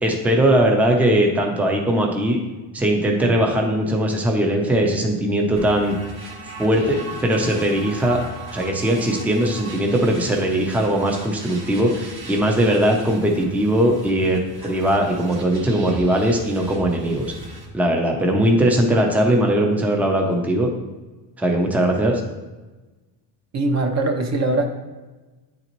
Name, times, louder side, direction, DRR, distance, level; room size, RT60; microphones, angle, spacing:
voice 1, 0.0-2.4 2.7-5.9 6.6-8.2 8.5-17.3 17.7-20.7 21.4-22.2, right 1 dB, 5° right, 2 dB, 0.6 m, -20 dB
sound 1, 5.6-17.7, right 2 dB, 60° right, 1.8 m, -38 dB
voice 2, 23.5-24.6, right 2 dB, 40° right, 4 dB, 0.8 m, -21 dB
9.0 x 4.0 x 3.0 m, 1.2 s
cardioid pair, 150°, 43 cm